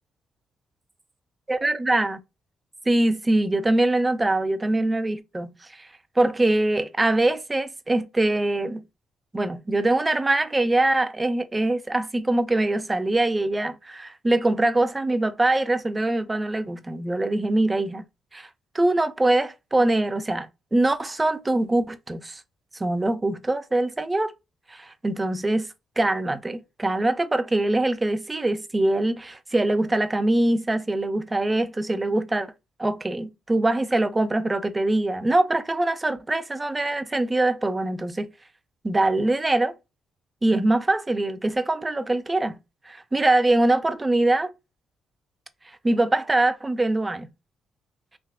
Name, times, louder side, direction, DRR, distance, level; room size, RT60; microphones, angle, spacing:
voice 1, 1.5-2.2 2.9-5.5 5.8-5.9 6.2-8.8 9.3-18.0 18.3-18.5 18.7-22.4 22.8-24.3 24.7-25.7 26.0-32.5 32.8-38.3 38.8-39.7 40.4-42.6 42.9-44.5 45.8-47.3, right 2 dB, 20° right, 0.4 m, -23 dB
3.4 x 2.8 x 2.3 m
cardioid pair, 90°, 0 cm